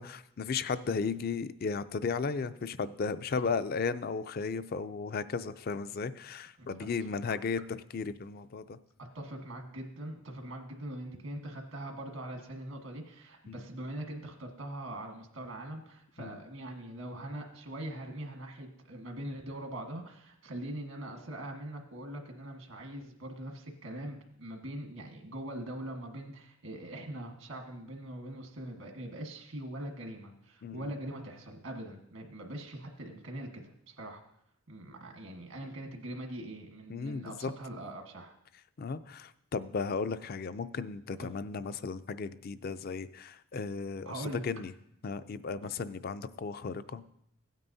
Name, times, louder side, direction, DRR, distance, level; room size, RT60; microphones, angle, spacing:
voice 1, 0.0-8.8 13.5-13.6 16.2-16.4 30.6-30.9 36.9-37.5 38.8-44.7 45.0-47.0, left 5 dB, 45° left, 14 dB, 0.4 m, -35 dB
voice 2, 9.1-33.6 33.9-34.2 34.7-38.3 41.2-41.3 44.0-44.4, right 1 dB, 85° right, 3 dB, 1.4 m, -42 dB
16.0 x 9.1 x 2.7 m, 0.76 s
head